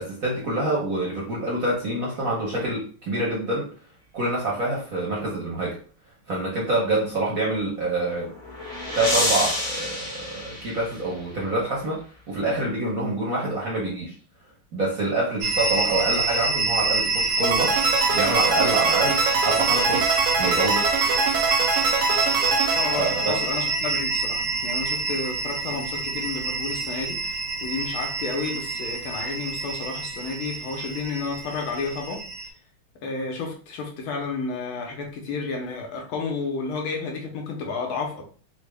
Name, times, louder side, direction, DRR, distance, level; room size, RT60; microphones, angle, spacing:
voice 1, 0.0-3.7 4.1-5.8 6.3-8.3 8.9-12.0 12.3-14.1 14.7-17.8 18.1-20.8 23.0-23.4, right 2 dB, 60° right, -4 dB, 0.9 m, -26 dB
sound 1, 8.0-11.3, left 1 dB, 45° left, 1.0 m, -29 dB
sound 2, 15.4-32.5, right 3 dB, 75° right, 1.3 m, -26 dB
sound 3, 17.4-23.7, right 4 dB, 90° right, 1.6 m, -24 dB
voice 2, 22.7-32.2 33.0-38.2, left 4 dB, 75° left, 1 dB, 1.6 m, -31 dB
4.0 x 2.1 x 3.2 m, 0.41 s
omnidirectional pair, 2.4 m